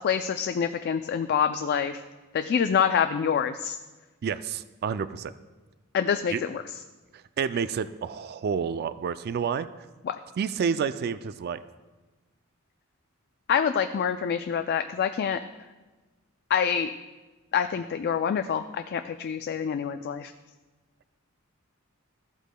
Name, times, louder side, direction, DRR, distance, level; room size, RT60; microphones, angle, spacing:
voice 1, 0.0-2.0 2.3-3.8 5.9-6.6 10.0-10.2 13.5-15.4 16.5-16.9 17.5-20.3, left 7 dB, 50° left, 8 dB, 0.3 m, -26 dB
voice 2, 4.2-5.3 6.3-6.4 7.1-9.7 10.4-11.6, right 6 dB, 50° right, 13 dB, 0.3 m, -29 dB
14.5 x 8.1 x 2.2 m, 1.2 s
head